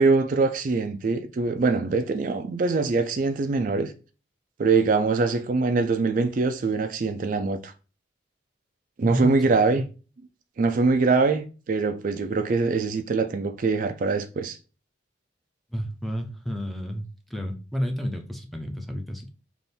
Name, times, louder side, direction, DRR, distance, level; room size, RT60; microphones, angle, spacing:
voice 1, 0.0-3.9 4.6-7.7 9.0-9.8 10.6-14.6, right 4 dB, 45° right, 0.4 m, -23 dB
voice 2, 15.7-19.3, equal, ahead, 0.5 m, -31 dB
3.5 x 2.5 x 4.0 m
head